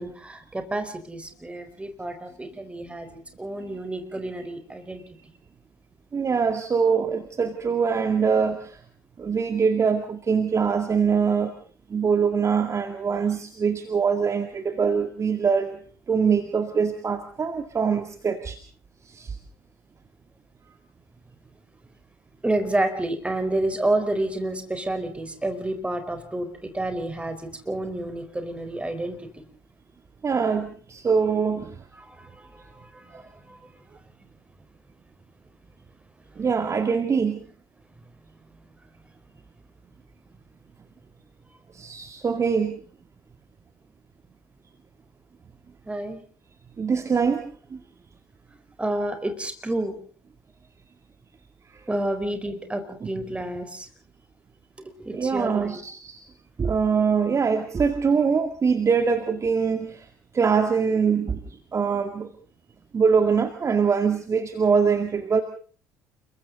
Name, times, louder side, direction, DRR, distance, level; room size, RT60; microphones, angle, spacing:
voice 1, 0.0-5.4 22.4-29.4 31.9-33.8 36.4-36.5 45.8-46.2 48.8-49.9 51.9-53.9 54.8-55.8, right 1 dB, 10° right, 8 dB, 4.4 m, -30 dB
voice 2, 6.1-8.8 9.2-11.5 11.9-15.8 16.1-18.6 19.0-19.4 30.2-31.8 33.1-33.2 36.4-37.5 41.7-42.8 46.8-47.8 51.7-51.9 55.1-56.2 56.6-60.1 60.3-62.3 62.9-65.4, right 6 dB, 30° right, 7 dB, 2.1 m, -23 dB
29.5 x 22.5 x 4.0 m, 0.42 s
figure-of-eight pair, 55°, 9 cm